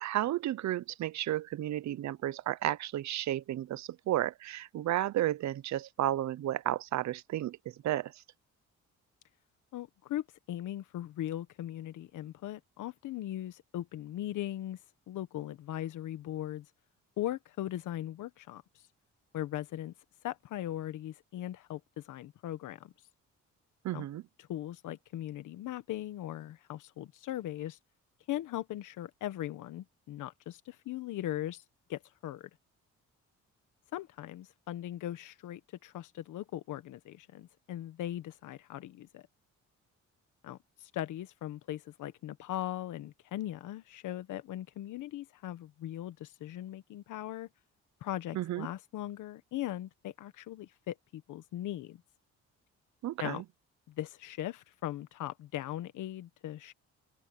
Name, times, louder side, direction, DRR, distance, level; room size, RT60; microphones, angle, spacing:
voice 1, 0.0-7.6 7.8-8.1 23.8-24.2 48.3-48.7 53.0-53.4, right 13 dB, 65° right, 0.8 m, -32 dB
voice 2, 9.7-14.8 15.1-16.6 17.2-18.6 19.3-19.9 20.2-22.9 23.9-24.0 24.5-27.8 28.3-31.6 31.9-32.5 33.9-39.2 40.4-47.5 48.0-52.0 53.2-53.4 54.0-56.7, left 13 dB, 80° left, 1.5 m, -39 dB
open air
cardioid pair, 90°, 30 cm